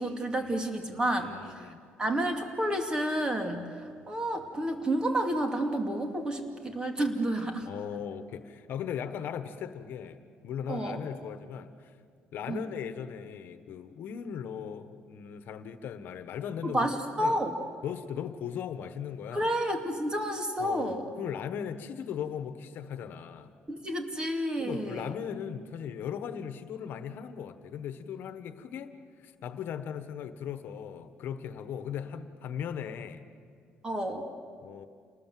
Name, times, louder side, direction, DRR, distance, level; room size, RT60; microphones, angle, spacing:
voice 1, 0.0-1.3 1.6-1.7 2.0-7.7 10.7-11.0 12.5-12.6 16.6-17.5 19.3-21.0 23.7-25.1 33.8-34.2, right 1 dB, 20° right, 4 dB, 2.6 m, -30 dB
voice 2, 1.2-1.8 7.7-11.9 12.3-16.9 17.2-17.4 17.8-19.5 20.6-23.5 24.6-28.9 29.2-33.2 34.6-34.9, left 8 dB, 65° left, 10 dB, 1.3 m, -38 dB
28.5 x 19.5 x 7.6 m, 2.1 s
cardioid pair, 120°, 4 cm